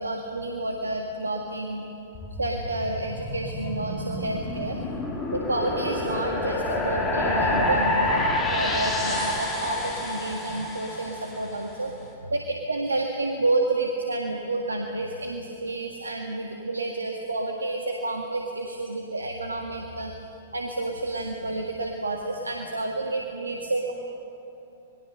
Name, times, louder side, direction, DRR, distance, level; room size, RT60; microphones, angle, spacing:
voice 1, 0.0-1.8 2.4-4.8 5.3-8.1 8.5-20.1 20.5-23.9, right 2 dB, 85° right, 2 dB, 1.8 m, -29 dB
sound 1, 2.1-11.5, left 1 dB, 20° left, 4.4 m, -28 dB
26.5 x 21.0 x 6.8 m, 2.9 s
figure-of-eight pair, 110°, 0 cm